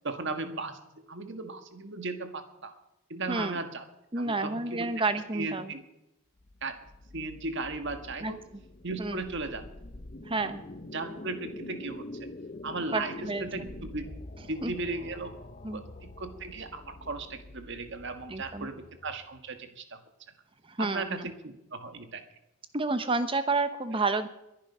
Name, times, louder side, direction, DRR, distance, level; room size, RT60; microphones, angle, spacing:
voice 1, 0.0-0.8 1.1-2.7 3.1-3.8 4.1-5.0 5.3-5.8 6.6-6.8 7.1-8.4 8.8-9.6 10.9-12.3 12.6-14.1 14.5-15.3 15.7-20.0 20.8-22.2, right 3 dB, 55° right, 8 dB, 1.6 m, -36 dB
voice 2, 3.3-3.6 4.1-5.7 8.2-8.3 9.0-9.2 10.2-10.6 12.9-13.7 14.6-14.8 15.6-15.8 18.3-18.7 20.7-21.3 22.7-24.3, right 3 dB, 25° right, 10 dB, 1.0 m, -30 dB
sound 1, 6.4-19.6, left 2 dB, 35° left, 0.7 m, -46 dB
22.0 x 10.5 x 5.6 m, 0.88 s
head